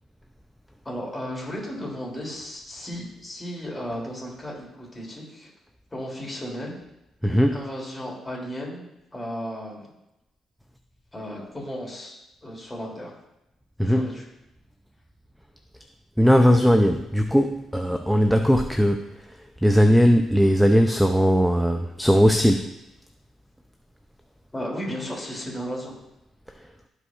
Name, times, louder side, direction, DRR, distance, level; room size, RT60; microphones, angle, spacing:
voice 1, 0.8-5.5 5.9-6.7 7.3-8.9 9.1-10.0 11.1-13.1 13.8-14.2 24.5-25.9, equal, 20° left, -3 dB, 2.9 m, -34 dB
voice 2, 7.2-7.6 13.8-14.1 16.2-19.1 19.6-22.7, equal, ahead, 6 dB, 0.5 m, -19 dB
14.5 x 5.0 x 2.5 m, 0.91 s
cardioid pair, 90°, 0 cm